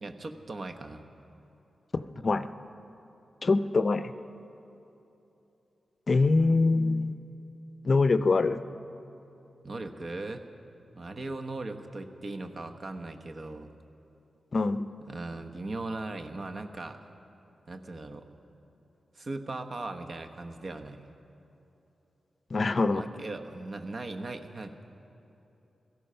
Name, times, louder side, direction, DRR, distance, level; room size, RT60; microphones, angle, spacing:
voice 1, 0.0-1.0 9.6-10.4 11.0-13.7 15.1-17.0 17.7-18.3 19.1-21.0 22.9-24.7, right 2 dB, 55° right, 6 dB, 1.1 m, -38 dB
voice 2, 1.9-2.5 3.4-4.1 6.1-7.1 7.8-8.6 14.5-14.9 22.5-23.0, left 3 dB, 50° left, 12 dB, 0.5 m, -24 dB
17.5 x 14.0 x 5.7 m, 3.0 s
cardioid pair, 55°, 0 cm